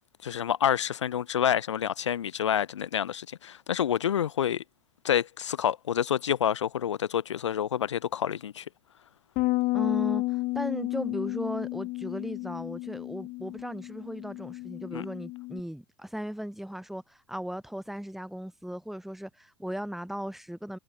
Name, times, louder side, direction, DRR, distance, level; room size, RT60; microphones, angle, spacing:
voice 1, 0.2-4.6 5.0-8.7 14.9-15.0, left 9 dB, 80° left, 0.8 m, -28 dB
Bass guitar, 9.4-15.6, left 22 dB, 50° left, 1.6 m, -32 dB
voice 2, 9.7-20.8, equal, ahead, 7.2 m, -37 dB
figure-of-eight pair, 85°, 15 cm